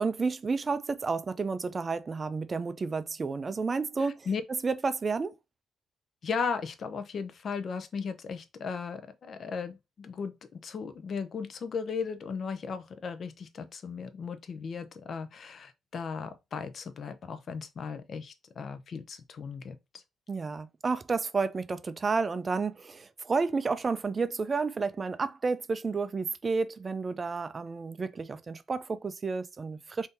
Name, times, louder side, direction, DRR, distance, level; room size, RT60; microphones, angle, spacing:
voice 1, 0.0-4.3 4.6-5.4 20.3-30.1, right 4 dB, 35° right, 0.3 m, -31 dB
voice 2, 4.0-4.4 6.2-10.3 10.6-20.0, left 5 dB, 55° left, 0.5 m, -36 dB
2.6 x 2.6 x 3.6 m
cardioid pair, 90°, 0 cm